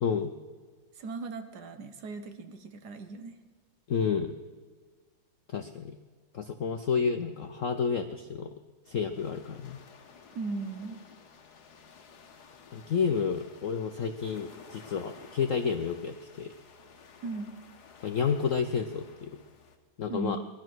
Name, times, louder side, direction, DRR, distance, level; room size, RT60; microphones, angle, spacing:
voice 1, 0.0-0.3 3.9-4.3 5.5-6.0 6.3-8.5 8.9-9.8 12.7-16.5 18.0-19.3 20.0-20.4, left 6 dB, 85° left, 7 dB, 0.7 m, -30 dB
voice 2, 0.9-3.4 10.3-11.0 17.2-17.6 20.1-20.5, right 3 dB, 60° right, 8 dB, 1.5 m, -37 dB
sound 1, 8.8-19.8, left 5 dB, 55° left, 1.7 m, -54 dB
19.5 x 11.5 x 6.2 m, 1.5 s
omnidirectional pair, 2.2 m